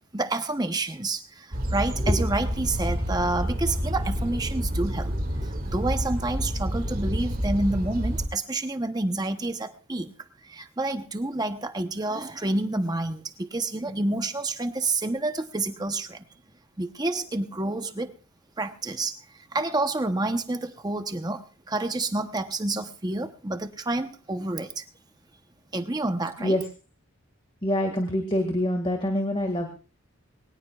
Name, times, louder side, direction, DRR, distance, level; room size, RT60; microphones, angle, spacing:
voice 1, 0.1-5.1 5.4-10.1 10.4-16.2 16.8-18.1 18.6-19.2 19.5-24.8 25.7-26.6, right 2 dB, 20° right, 8 dB, 0.9 m, -29 dB
sound 1, 1.5-8.3, equal, 40° right, 2.1 m, -28 dB
voice 2, 27.6-29.8, left 1 dB, 25° left, 5 dB, 1.9 m, -25 dB
22.0 x 19.0 x 2.4 m, 0.34 s
head